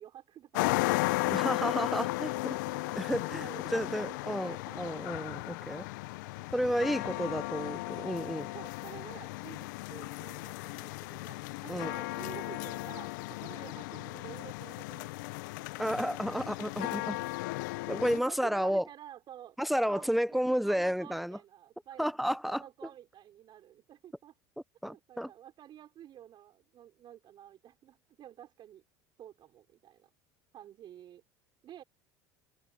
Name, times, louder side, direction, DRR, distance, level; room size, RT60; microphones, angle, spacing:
voice 1, 0.0-1.2 2.3-2.8 3.3-4.8 6.5-7.3 8.4-15.5 16.4-16.9 18.0-19.6 19.9-24.4 24.9-28.8 29.2-30.1 30.5-31.2 31.6-31.8, right 11 dB, 50° right, 5.6 m, -50 dB
sound 1, 0.5-18.2, left 21 dB, 75° left, 0.9 m, -35 dB
voice 2, 1.3-2.3 3.0-5.9 6.5-8.5 11.7-11.9 15.8-17.2 17.9-18.8 19.6-21.4 22.0-22.6 24.8-25.3, equal, ahead, 0.8 m, -31 dB
open air
hypercardioid pair, 75°, 10 cm